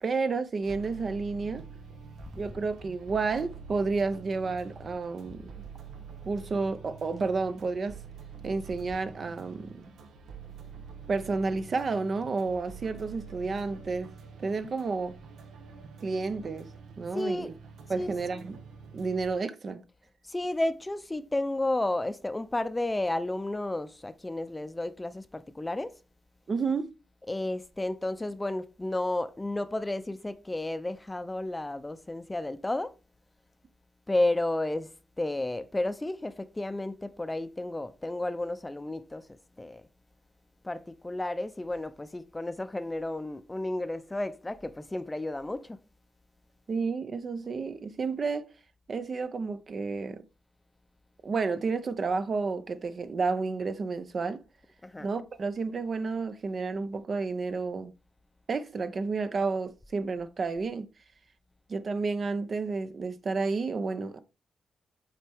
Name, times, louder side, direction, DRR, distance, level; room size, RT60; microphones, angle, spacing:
voice 1, 0.0-1.6 2.4-5.5 6.2-8.0 8.4-9.8 11.1-14.1 14.4-15.2 16.0-16.7 17.0-17.5 17.9-18.6 18.9-19.8 26.5-26.9 46.7-48.4 48.9-50.2 51.2-54.4 55.0-57.9 58.5-60.9 61.7-64.2, right 4 dB, 50° right, 0.6 m, -31 dB
sound 1, 0.6-19.3, right 5 dB, 80° right, 0.9 m, -47 dB
voice 2, 17.1-17.5 17.9-18.4 20.3-25.9 27.2-32.9 34.1-34.9 35.2-39.8 40.6-45.8 54.8-55.1, left 2 dB, 15° left, 0.6 m, -32 dB
7.3 x 4.3 x 3.5 m
cardioid pair, 85°, 0 cm